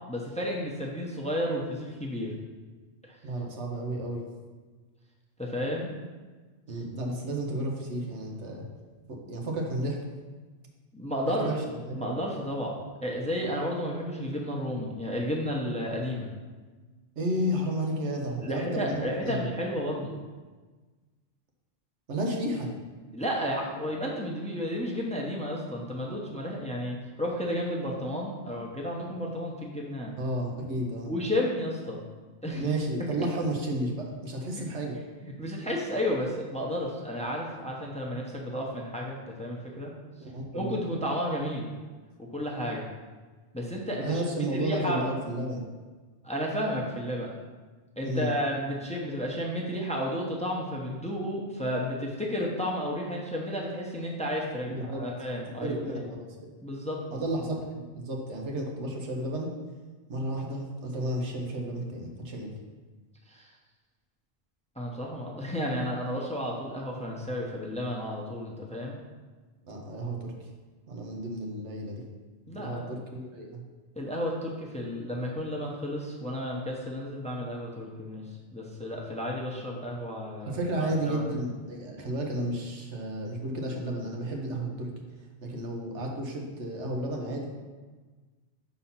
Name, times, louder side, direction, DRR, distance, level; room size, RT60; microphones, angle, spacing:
voice 1, 0.1-2.3 3.1-3.2 5.4-5.9 10.9-11.5 11.9-12.7 13.0-16.3 18.4-20.1 23.1-30.1 31.1-32.0 32.4-32.6 35.2-39.9 40.5-41.7 42.2-42.8 43.5-44.2 44.5-45.1 46.2-47.3 48.0-56.0 56.6-57.0 63.3-63.5 64.8-69.0 72.5-72.9 74.0-80.6 81.0-81.2, equal, 5° left, -1 dB, 0.7 m, -32 dB
voice 2, 3.2-4.3 6.7-8.7 9.1-10.1 11.2-12.1 17.2-19.5 22.1-22.7 30.2-31.1 32.5-35.0 40.2-40.8 44.0-45.7 48.0-48.3 54.7-55.0 55.6-56.5 57.1-59.5 60.1-62.5 69.6-70.5 70.9-72.0 72.6-73.6 80.5-84.9 85.4-87.6, right 1 dB, 85° right, 0 dB, 1.3 m, -32 dB
5.6 x 4.1 x 5.6 m, 1.3 s
omnidirectional pair, 1.1 m